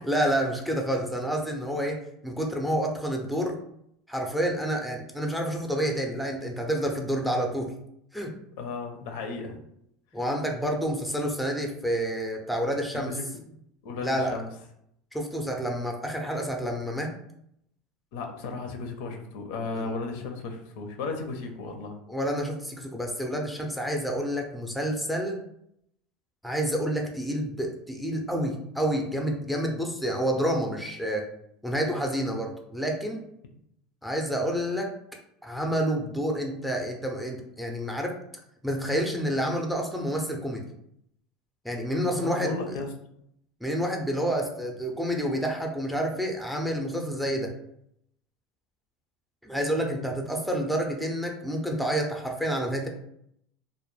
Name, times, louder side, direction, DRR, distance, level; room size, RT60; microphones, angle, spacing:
voice 1, 0.0-3.6 4.1-7.7 8.1-8.4 10.1-13.1 14.0-14.3 15.1-17.1 19.7-19.9 22.1-25.4 26.4-31.3 31.6-33.2 34.0-34.9 35.4-38.1 38.6-40.6 41.6-42.6 43.6-47.5 49.4-52.9, equal, ahead, 1 dB, 0.4 m, -29 dB
voice 2, 8.6-9.5 13.1-13.2 13.8-14.5 18.1-21.9 42.1-42.9 49.7-50.0, left 4 dB, 75° left, 4 dB, 0.5 m, -35 dB
2.2 x 2.0 x 3.1 m, 0.74 s
supercardioid pair, 125°, 0 cm